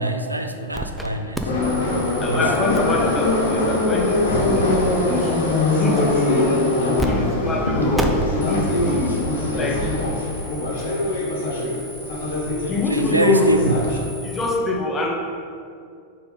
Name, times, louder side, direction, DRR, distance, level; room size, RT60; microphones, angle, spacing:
voice 1, 0.0-1.5 2.3-2.5 12.9-13.8, right 2 dB, 85° right, 6 dB, 0.3 m, -23 dB
sound 1, 0.7-1.1 1.3-7.1 7.3-7.4 7.9-14.6, right 1 dB, 5° right, 0.5 m, -35 dB
Subway metro underground, 1.5-14.0, left 2 dB, 60° left, 1.1 m, -22 dB
voice 2, 2.2-5.4 5.7-6.6 7.0-9.2 9.6-9.9 12.7-13.5 14.2-15.1, left 3 dB, 20° left, 0 dB, 1.0 m, -24 dB
Liquid, 2.7-9.5, left 1 dB, 75° left, 0.8 m, -38 dB
4.7 x 3.8 x 5.3 m, 2.3 s
figure-of-eight pair, 90°, 0 cm